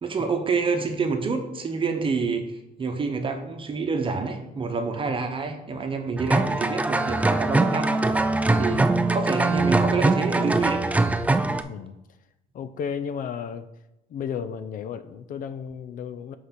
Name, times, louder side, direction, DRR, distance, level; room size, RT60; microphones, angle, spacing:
voice 1, 0.0-7.9 8.6-10.8, right 4 dB, 30° right, 5 dB, 1.0 m, -28 dB
sound 1, 6.2-11.6, right 2 dB, 10° right, 0.3 m, -22 dB
voice 2, 11.6-12.0 12.5-13.7 14.1-16.4, left 7 dB, 55° left, 11 dB, 0.5 m, -33 dB
5.7 x 4.8 x 5.8 m, 0.92 s
cardioid pair, 110°, 17 cm